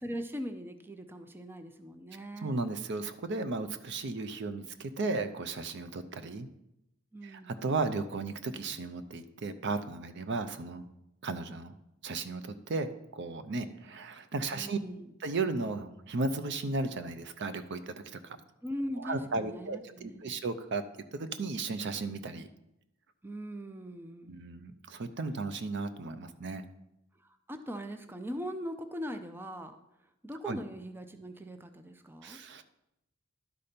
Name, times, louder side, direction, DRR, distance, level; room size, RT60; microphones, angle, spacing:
voice 1, 0.0-2.6 7.1-7.6 14.5-15.1 18.6-20.3 23.2-24.4 27.2-29.8 30.2-32.4, equal, 10° right, 8 dB, 0.5 m, -40 dB
voice 2, 2.4-6.5 7.2-10.8 11.2-11.8 12.0-14.8 15.2-18.4 19.0-20.8 21.1-22.5 24.3-26.7 30.5-30.6 32.2-32.6, right 3 dB, 60° right, 10 dB, 0.6 m, -35 dB
11.5 x 4.2 x 5.1 m, 0.86 s
head